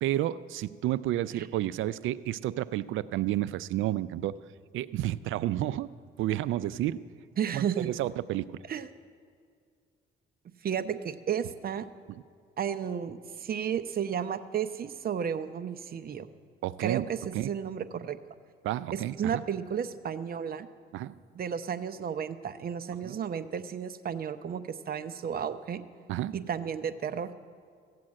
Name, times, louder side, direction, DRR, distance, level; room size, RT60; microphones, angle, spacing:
voice 1, 0.0-4.3 4.7-5.9 6.2-7.0 7.5-8.4 16.6-17.0 17.3-17.5 18.6-19.4 20.9-21.1 23.0-23.2 26.1-26.3, right 14 dB, 80° right, 17 dB, 0.4 m, -30 dB
voice 2, 7.4-7.9 8.7-8.9 10.6-11.9 12.6-16.3 16.8-18.2 18.9-20.7 21.3-25.8 26.3-27.3, right 8 dB, 50° right, 11 dB, 0.7 m, -33 dB
15.5 x 7.7 x 8.6 m, 2.2 s
cardioid pair, 90°, 20 cm